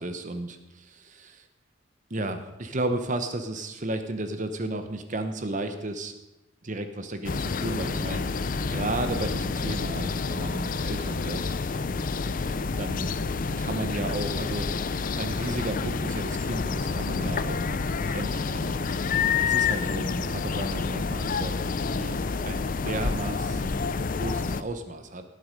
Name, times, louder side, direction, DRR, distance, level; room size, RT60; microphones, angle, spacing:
voice 1, 0.0-1.5 2.1-6.2 6.6-8.4 8.7-11.5 12.8-13.1 13.6-14.7 15.2-22.2 22.4-25.2, right 2 dB, 40° right, 8 dB, 0.9 m, -34 dB
sound 1, 7.2-24.6, left 4 dB, 45° left, 0.5 m, -29 dB
sound 2, 8.2-21.7, equal, 75° left, 0.9 m, -42 dB
18.0 x 7.8 x 5.2 m, 1.0 s
head